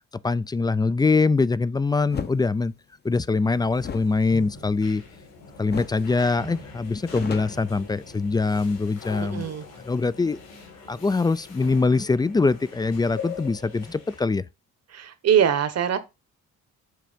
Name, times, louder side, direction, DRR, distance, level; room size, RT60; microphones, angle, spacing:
voice 1, 0.2-2.7 3.0-5.0 5.6-9.5 9.8-10.4 10.9-14.4, left 3 dB, 15° left, 0.3 m, -23 dB
sound 1, 2.1-2.4 3.8-5.3 5.7-6.1 6.4-6.5 6.8-8.3, left 6 dB, 35° left, 0.7 m, -36 dB
sound 2, 3.4-14.2, left 4 dB, 80° left, 4.2 m, -42 dB
voice 2, 9.2-9.6 14.9-16.0, right 8 dB, 55° right, 1.3 m, -22 dB
7.7 x 3.3 x 5.1 m
cardioid pair, 90°, 30 cm